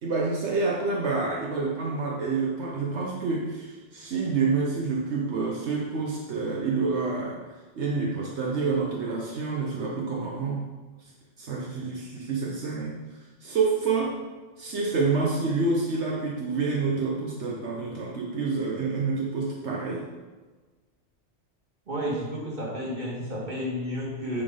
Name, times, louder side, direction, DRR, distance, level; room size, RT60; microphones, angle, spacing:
voice 1, 0.0-10.7 11.0-11.1 11.4-14.2 14.6-20.1, right 4 dB, 75° right, -3 dB, 1.3 m, -28 dB
voice 2, 21.9-24.4, equal, 40° right, -4 dB, 2.3 m, -31 dB
9.5 x 4.3 x 5.1 m, 1.3 s
omnidirectional pair, 1.2 m